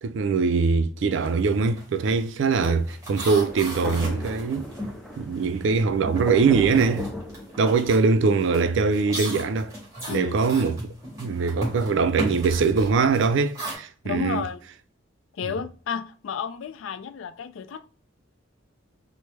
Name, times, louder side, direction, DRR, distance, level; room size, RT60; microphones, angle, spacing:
voice 1, 0.0-4.7 5.2-7.1 7.6-9.7 10.1-10.8 11.2-14.4, right 4 dB, 65° right, 0.3 m, -22 dB
sound 1, 1.1-1.4 1.7-5.7 6.0-13.7, right 1 dB, 15° right, 1.8 m, -36 dB
Thunder, 3.3-8.1, equal, ahead, 0.4 m, -37 dB
voice 2, 14.0-14.6 15.3-17.9, left 7 dB, 75° left, 0.3 m, -32 dB
4.5 x 2.0 x 3.1 m
head